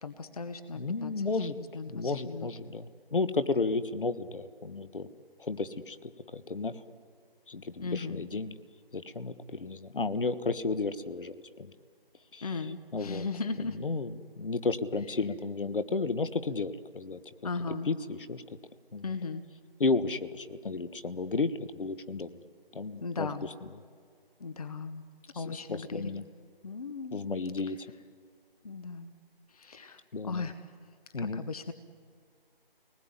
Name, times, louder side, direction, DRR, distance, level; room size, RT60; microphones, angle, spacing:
voice 1, 0.0-2.5 7.8-8.2 12.4-13.8 17.4-17.9 19.0-19.4 23.0-23.5 24.4-25.0 25.3-26.1 26.6-27.2 28.6-29.1 29.5-30.6 31.2-31.7, left 4 dB, 40° left, 10 dB, 1.1 m, -37 dB
voice 2, 0.7-1.5 1.9-5.1 5.4-6.8 7.5-8.5 8.9-11.7 12.3-12.4 12.9-13.3 13.8-17.2 17.9-18.4 18.9-19.0 19.8-22.3 22.7-23.3 25.3-26.2 27.1-27.8 30.1-30.5 31.1-31.4, left 3 dB, 65° left, 12 dB, 1.4 m, -33 dB
30.0 x 20.0 x 9.7 m, 2.1 s
figure-of-eight pair, 165°, 29 cm